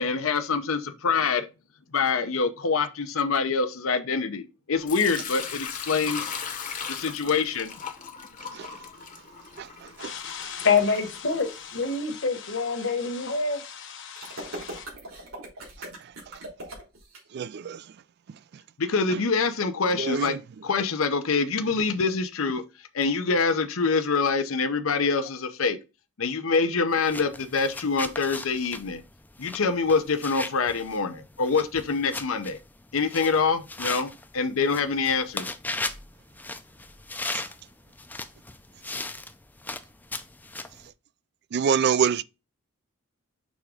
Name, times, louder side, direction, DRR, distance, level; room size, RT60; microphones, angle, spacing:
voice 1, 0.0-1.5 1.9-6.3 6.9-7.7 18.8-20.4 20.6-22.6 22.9-25.8 26.2-29.0 29.4-32.6 32.9-35.5, left 4 dB, 75° left, 0.7 m, -25 dB
Sink (filling or washing) / Liquid, 4.9-11.8, left 7 dB, 35° left, 0.9 m, -38 dB
voice 2, 10.0-14.9, left 5 dB, 60° left, 1.3 m, -27 dB
sound 1, 14.2-17.2, right 1 dB, 80° right, 3.5 m, -39 dB
voice 3, 17.3-17.8 20.0-20.4 41.5-42.2, right 7 dB, 50° right, 0.3 m, -25 dB
sound 2, 26.9-40.9, left 2 dB, 10° left, 0.5 m, -38 dB
6.2 x 3.5 x 4.9 m
head